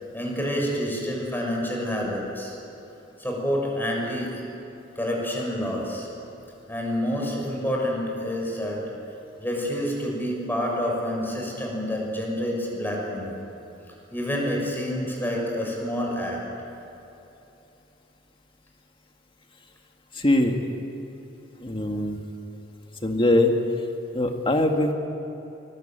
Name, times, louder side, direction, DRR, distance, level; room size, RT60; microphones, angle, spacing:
voice 1, 0.1-2.5 3.2-4.3 4.9-6.1 6.7-8.8 9.4-13.3 14.1-16.4, equal, 10° left, -2 dB, 6.7 m, -28 dB
voice 2, 20.1-20.6 21.6-22.2 23.0-23.6 24.1-24.9, left 1 dB, 30° left, 3 dB, 2.2 m, -22 dB
24.5 x 22.0 x 9.1 m, 3.0 s
head